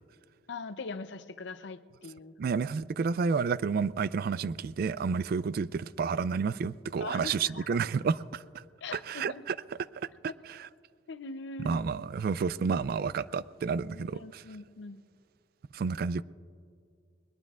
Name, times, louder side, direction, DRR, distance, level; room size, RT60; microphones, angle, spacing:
voice 1, 0.5-2.6 7.0-7.8 8.8-9.4 11.1-11.8 13.9-15.0, left 3 dB, 65° left, 0.6 m, -42 dB
voice 2, 2.4-8.6 8.9-9.6 9.9-10.1 10.6-10.7 11.6-14.4 15.7-16.2, right 5 dB, 50° right, 0.3 m, -30 dB
21.0 x 20.0 x 2.4 m
head